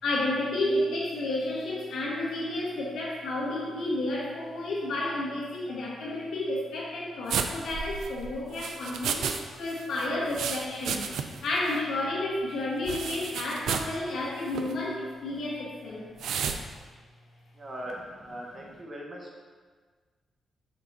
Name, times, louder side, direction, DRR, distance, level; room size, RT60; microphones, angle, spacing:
voice 1, 0.0-11.1 11.4-16.1, left 1 dB, 75° left, -4 dB, 1.5 m, -31 dB
sound 1, 7.3-9.4 9.7-11.5 11.7-11.8 12.9-13.9 14.5-14.7 16.2-16.6, right 6 dB, 90° right, 0.4 m, -32 dB
voice 2, 17.5-19.4, equal, 30° right, -1 dB, 1.0 m, -40 dB
6.2 x 4.3 x 3.9 m, 1.5 s
wide cardioid pair, 150°, 0 cm